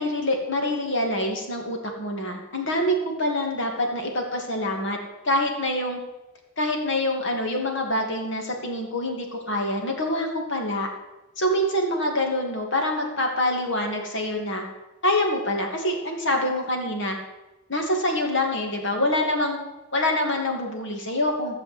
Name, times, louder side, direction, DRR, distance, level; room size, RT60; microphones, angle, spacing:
voice 1, 0.0-5.0 5.2-6.0 6.6-10.9 11.4-14.6 15.0-17.2 17.7-19.6 19.9-21.6, left 1 dB, 55° left, 2 dB, 2.7 m, -25 dB
15.5 x 6.9 x 8.0 m, 1.0 s
head